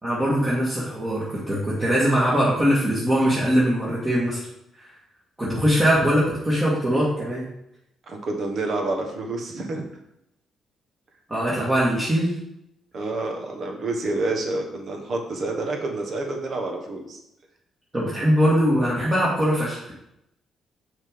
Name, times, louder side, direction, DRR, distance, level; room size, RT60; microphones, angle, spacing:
voice 1, 0.0-4.4 4.8-4.9 5.4-7.5 11.3-12.3 17.9-19.9, equal, 20° right, -7 dB, 1.8 m, -21 dB
voice 2, 8.1-9.9 12.9-17.2, right 2 dB, 55° right, 2 dB, 1.3 m, -28 dB
6.2 x 3.8 x 5.2 m, 0.82 s
cardioid pair, 90°, 0 cm